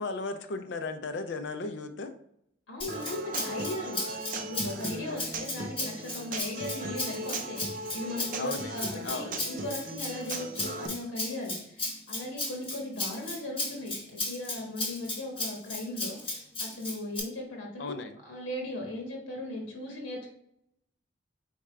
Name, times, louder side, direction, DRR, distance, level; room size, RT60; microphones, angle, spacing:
voice 1, 0.0-2.2 8.4-9.4 17.8-18.2, left 3 dB, 60° left, 8 dB, 0.4 m, -36 dB
voice 2, 2.7-4.0 4.3-13.9 14.2-20.3, left 1 dB, 90° left, -1 dB, 1.3 m, -38 dB
Rattle (instrument), 2.8-17.2, left 2 dB, 25° left, 0.9 m, -36 dB
Human voice / Acoustic guitar, 2.9-10.9, right 2 dB, 45° right, 0.5 m, -38 dB
4.3 x 3.6 x 3.2 m, 0.73 s
head